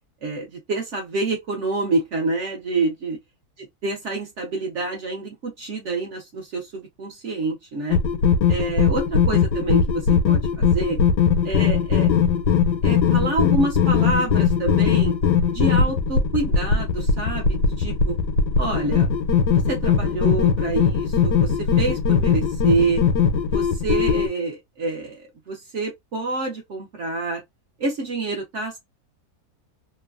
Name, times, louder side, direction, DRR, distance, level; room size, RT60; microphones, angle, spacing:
voice 1, 0.2-3.2 3.8-8.0 8.5-11.0 11.4-12.1 12.8-15.2 15.5-18.2 18.6-19.1 19.7-23.0 23.5-27.4 27.8-28.8, right 3 dB, 55° right, 0.9 m, -27 dB
sound 1, 7.9-24.3, left 6 dB, 85° left, 1.2 m, -20 dB
3.1 x 2.2 x 2.3 m
omnidirectional pair, 1.7 m